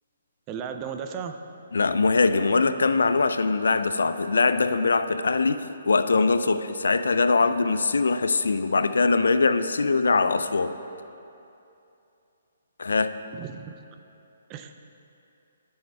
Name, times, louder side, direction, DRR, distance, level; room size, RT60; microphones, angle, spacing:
voice 1, 0.5-1.4 13.3-13.7 14.5-14.7, right 7 dB, 25° right, 7 dB, 0.5 m, -35 dB
voice 2, 1.7-10.8 12.8-13.2, left 4 dB, 85° left, 11 dB, 0.4 m, -22 dB
12.5 x 6.4 x 3.4 m, 2.7 s
hypercardioid pair, 155°, 0 cm